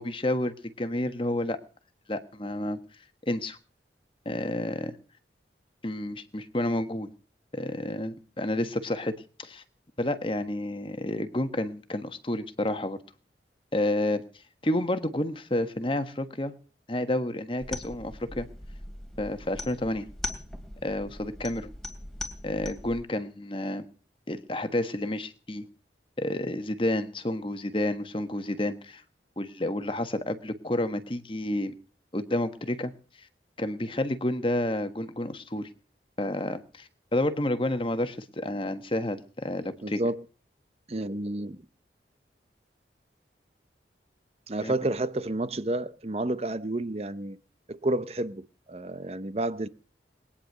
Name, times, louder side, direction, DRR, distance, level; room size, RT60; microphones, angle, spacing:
voice 1, 0.0-1.6 2.1-2.8 3.3-3.6 4.2-5.0 5.8-7.1 7.5-9.6 10.0-13.0 13.7-14.2 14.6-16.5 16.9-18.5 19.2-20.1 20.8-21.7 22.4-23.9 24.3-25.6 26.2-29.0 29.4-31.7 32.1-32.9 33.2-33.3 33.6-35.7 36.2-40.0 44.6-44.7, left 1 dB, 30° left, 1.3 m, -30 dB
sound 1, 17.6-23.0, left 1 dB, 5° left, 2.7 m, -40 dB
voice 2, 39.8-40.2 40.9-41.6 44.5-47.4 47.7-49.7, right 1 dB, 35° right, 0.7 m, -30 dB
20.5 x 10.0 x 6.7 m
head